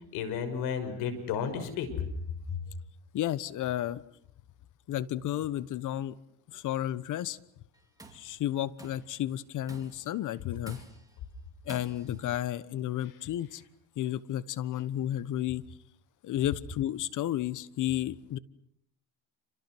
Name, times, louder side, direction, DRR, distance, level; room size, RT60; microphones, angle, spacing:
voice 1, 0.1-2.0 2.5-2.6, left 7 dB, 65° left, 9 dB, 5.9 m, -32 dB
voice 2, 3.1-4.0 4.9-6.1 6.5-7.4 8.1-10.8 11.7-13.6 14.0-15.6 16.2-18.4, left 12 dB, 50° left, 18 dB, 1.3 m, -32 dB
Tools, 7.7-8.3 8.8-9.2 9.7-10.1 10.7-11.2 11.7-12.3, right 2 dB, 10° right, 4.3 m, -50 dB
28.5 x 26.5 x 6.3 m, 0.71 s
supercardioid pair, 100°, 39 cm